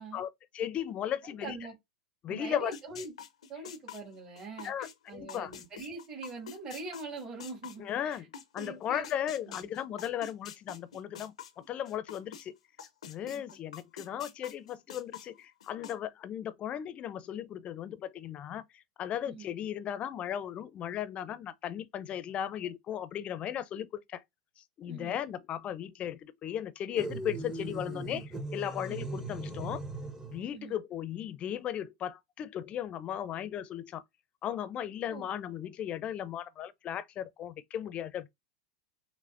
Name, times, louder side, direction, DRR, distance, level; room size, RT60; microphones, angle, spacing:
voice 1, 0.1-1.6 2.2-2.7 4.6-5.5 7.8-8.3 8.5-11.3 11.7-12.5 13.1-24.2 24.6-29.8 30.3-34.0 34.4-38.3, left 10 dB, 35° left, 0.5 m, -36 dB
voice 2, 1.4-1.7 2.3-3.1 3.5-8.2 8.6-9.1 9.5-9.7 13.3-13.4 19.2-19.5 24.9-25.2 28.9-29.1 30.5-30.8 35.1-35.3, right 3 dB, 35° right, 2.2 m, -43 dB
sound 1, 2.7-8.7 9.0-12.4 12.8-15.9, left 8 dB, 85° left, 0.6 m, -46 dB
sound 2, 27.0-30.5, right 2 dB, 15° right, 0.8 m, -39 dB
5.7 x 2.1 x 2.5 m
hypercardioid pair, 95°, 3 cm